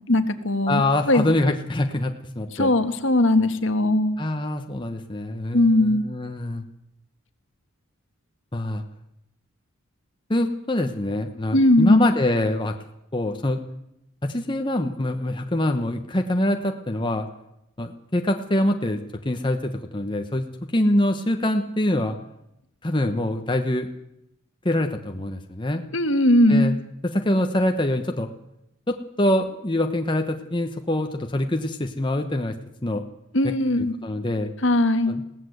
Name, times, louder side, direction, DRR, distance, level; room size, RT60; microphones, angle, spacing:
voice 1, 0.1-1.3 2.5-4.2 5.5-6.1 11.5-12.1 25.9-26.7 33.3-33.9 34.6-35.2, left 1 dB, 65° left, 9 dB, 1.7 m, -19 dB
voice 2, 0.7-2.7 4.2-6.6 8.5-8.8 10.3-12.7 13.1-13.6 14.2-17.3 17.8-20.5 20.7-22.2 22.8-23.9 24.6-25.8 26.5-26.8 27.1-28.3 28.9-32.5 32.8-33.0 33.4-33.5 34.0-34.5 35.1-35.2, left 1 dB, 25° left, 5 dB, 1.1 m, -24 dB
21.5 x 17.0 x 8.0 m, 0.84 s
head